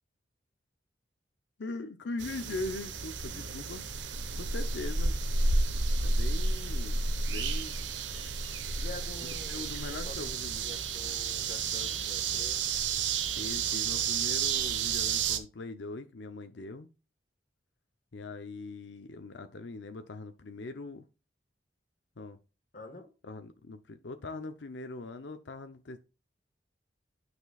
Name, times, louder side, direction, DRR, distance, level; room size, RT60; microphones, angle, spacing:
voice 1, 1.6-3.8 4.4-5.2 6.0-7.0 7.3-7.7 9.5-10.8 13.3-16.9 18.1-21.0 22.2-22.4 23.2-26.0, left 2 dB, 75° left, 0.7 m, -41 dB
sound 1, 2.2-15.4, right 4 dB, 90° right, 1.0 m, -31 dB
voice 2, 8.7-10.4 10.6-12.7 22.7-23.1, left 2 dB, 50° left, 1.5 m, -47 dB
9.7 x 6.1 x 2.3 m
head